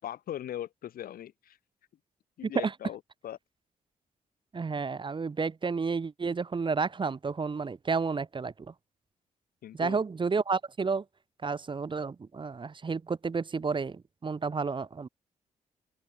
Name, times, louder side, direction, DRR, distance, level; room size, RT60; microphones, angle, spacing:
voice 1, 0.0-1.6 2.4-3.4 9.6-10.0, left 11 dB, 80° left, 4.8 m, -40 dB
voice 2, 4.5-8.7 9.8-11.0 11.4-15.1, right 4 dB, 35° right, 0.8 m, -31 dB
open air
cardioid pair, 65°, 15 cm